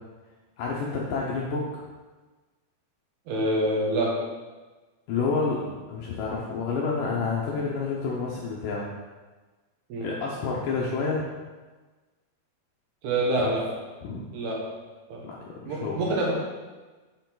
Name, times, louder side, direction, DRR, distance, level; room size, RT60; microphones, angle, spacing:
voice 1, 0.6-1.7 5.1-8.9 10.0-11.2 13.4-13.5 14.0-14.2 15.2-16.0, left 4 dB, 75° left, -3 dB, 2.1 m, -29 dB
voice 2, 3.3-4.2 9.9-10.1 13.0-13.7 14.3-14.7 15.1-15.2 15.7-16.3, right 1 dB, 75° right, -2 dB, 3.3 m, -26 dB
7.7 x 7.0 x 4.0 m, 1.3 s
omnidirectional pair, 4.7 m